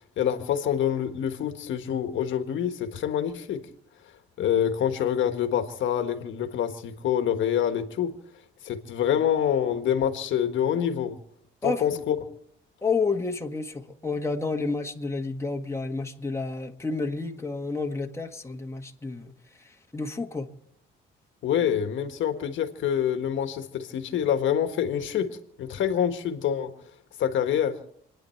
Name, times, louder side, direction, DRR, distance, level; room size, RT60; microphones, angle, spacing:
voice 1, 0.0-3.6 4.4-8.1 8.6-11.2 11.6-12.1 21.4-26.7 27.2-27.8, left 9 dB, 75° left, 1.5 m, -26 dB
voice 2, 11.6-12.0 12.8-20.5, left 4 dB, 15° left, 1.7 m, -30 dB
28.5 x 10.5 x 4.5 m
cardioid pair, 90°, 20 cm